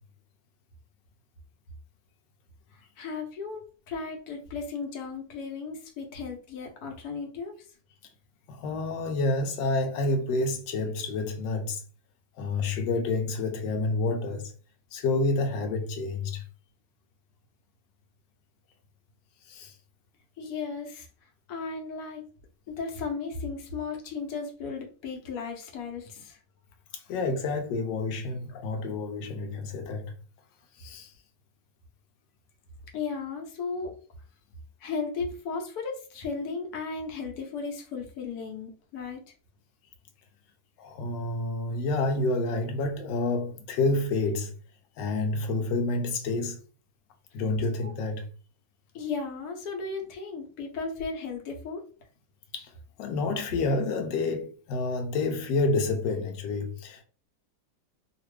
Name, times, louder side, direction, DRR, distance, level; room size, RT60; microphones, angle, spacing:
voice 1, 3.0-7.5 20.4-21.1 21.5-22.2 22.7-26.4 32.9-33.9 34.8-39.2 47.8-47.9 48.9-51.9, left 4 dB, 65° left, 1.2 m, -35 dB
voice 2, 8.5-11.8 12.4-14.5 14.9-16.4 19.4-19.7 26.9-30.1 30.7-31.1 40.8-44.5 45.0-46.6 47.3-48.3 52.5-52.7 53.0-57.0, left 3 dB, 85° left, 1.2 m, -29 dB
2.9 x 2.5 x 3.1 m
omnidirectional pair, 1.9 m